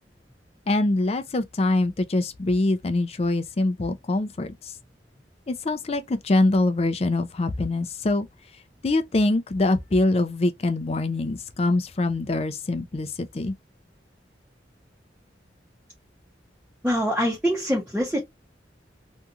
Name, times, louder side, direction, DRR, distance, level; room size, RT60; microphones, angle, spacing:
voice 1, 0.7-4.7 5.5-8.3 8.8-13.5, left 2 dB, 35° left, 0.4 m, -24 dB
voice 2, 16.8-18.3, equal, 5° right, 0.8 m, -24 dB
2.7 x 2.4 x 2.7 m
head